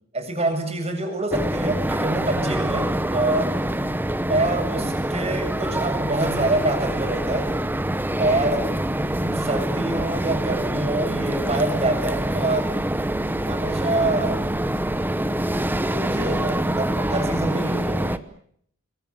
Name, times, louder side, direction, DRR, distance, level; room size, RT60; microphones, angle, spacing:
voice 1, 0.1-3.6 4.3-7.5 8.2-12.8 13.5-14.5 15.8-18.2, right 2 dB, 30° right, 5 dB, 7.6 m, -26 dB
sound 1, 1.3-18.2, right 1 dB, 10° right, 1.0 m, -25 dB
28.5 x 22.0 x 7.2 m, 0.66 s
head